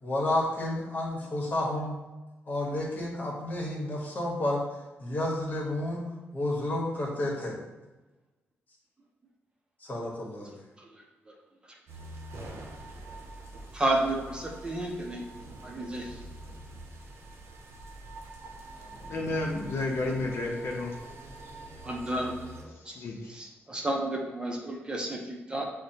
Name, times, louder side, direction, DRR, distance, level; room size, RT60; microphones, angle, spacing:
voice 1, 0.0-1.9 2.5-4.6 5.0-6.1 6.3-7.6 9.8-10.5, left 1 dB, 40° left, -3 dB, 1.2 m, -30 dB
sound 1, 11.9-22.6, right 2 dB, 70° right, 0.6 m, -45 dB
voice 2, 13.7-15.2 15.6-16.2 21.8-22.3 22.6-22.9 23.3-25.7, right 1 dB, 20° right, 0 dB, 0.6 m, -31 dB
voice 3, 19.0-20.9 22.9-23.3, left 2 dB, 65° left, -1 dB, 0.6 m, -31 dB
6.4 x 2.1 x 2.8 m, 1.2 s
cardioid pair, 115°, 4 cm